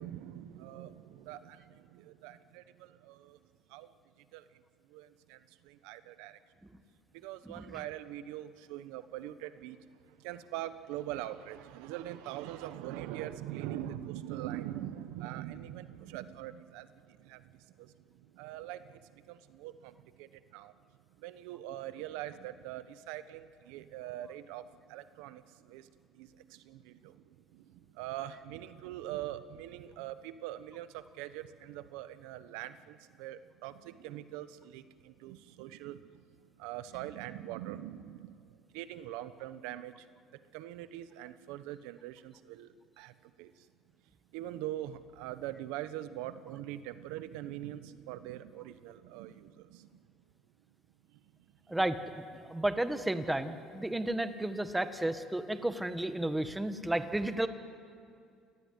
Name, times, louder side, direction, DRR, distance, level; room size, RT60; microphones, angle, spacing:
voice 1, 0.0-3.4 3.7-4.6 4.9-6.4 7.1-20.7 21.2-43.7 44.3-50.0 51.1-51.2 51.7-51.8 54.0-54.1, right 13 dB, 90° right, 13 dB, 1.1 m, -43 dB
voice 2, 51.7-57.5, right 1 dB, 10° right, 9 dB, 1.6 m, -32 dB
28.5 x 19.0 x 9.6 m, 2.3 s
cardioid pair, 105°, 0 cm